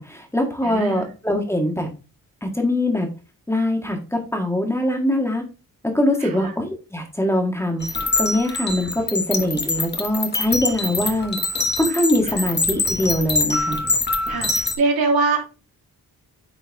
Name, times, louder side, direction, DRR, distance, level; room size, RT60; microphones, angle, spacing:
voice 1, 0.0-1.9 2.4-3.1 3.5-5.4 5.8-11.4 11.8-13.8, left 1 dB, 5° left, 3 dB, 1.6 m, -22 dB
voice 2, 0.6-1.1 6.2-6.5 12.3-12.4 14.3-15.4, right 3 dB, 80° right, 1 dB, 2.5 m, -23 dB
sound 1, 7.8-14.8, left 3 dB, 30° left, 1.2 m, -24 dB
8.4 x 4.5 x 3.4 m, 0.33 s
wide cardioid pair, 140°, 36 cm